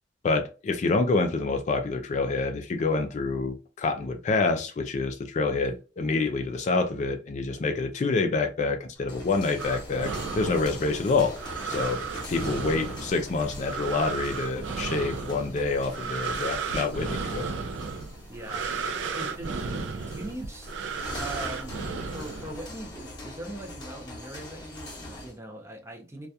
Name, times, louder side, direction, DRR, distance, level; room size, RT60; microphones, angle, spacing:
voice 1, 0.2-11.4 11.6-17.5, left 3 dB, 40° left, 0.3 m, -27 dB
sound 1, 8.9-25.4, left 1 dB, 25° left, 0.8 m, -43 dB
sound 2, 9.6-22.9, right 5 dB, 85° right, 0.4 m, -34 dB
voice 2, 18.3-18.7 19.1-20.7 21.2-26.3, right 1 dB, 15° right, 0.5 m, -41 dB
2.3 x 2.2 x 2.7 m
head